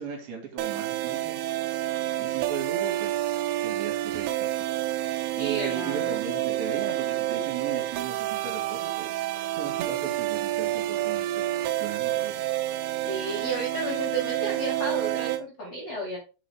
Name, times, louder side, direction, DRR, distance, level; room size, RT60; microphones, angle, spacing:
voice 1, 0.0-1.4 1.9-11.5 11.8-12.4 12.8-13.0, right 7 dB, 60° right, 1 dB, 3.3 m, -37 dB
sound 1, 0.6-15.4, right 15 dB, 90° right, 3.2 m, -29 dB
voice 2, 5.4-6.2 12.9-16.2, right 2 dB, 60° left, -2 dB, 1.7 m, -32 dB
7.3 x 4.0 x 4.6 m, 0.33 s
omnidirectional pair, 5.5 m